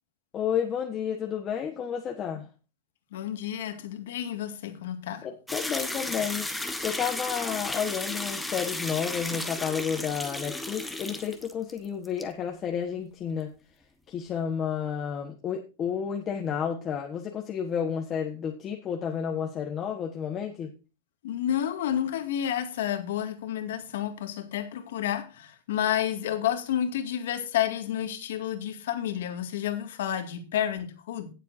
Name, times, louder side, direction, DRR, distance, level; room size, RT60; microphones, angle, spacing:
voice 1, 0.3-2.5 5.2-13.5 14.1-20.7, left 8 dB, 20° left, 1.3 m, -31 dB
voice 2, 3.1-5.3 21.2-31.3, left 10 dB, 70° left, 2.1 m, -30 dB
sound 1, 5.5-11.8 12.0-12.2, left 2 dB, 5° left, 1.1 m, -34 dB
18.0 x 7.5 x 2.7 m
supercardioid pair, 160°, 0 cm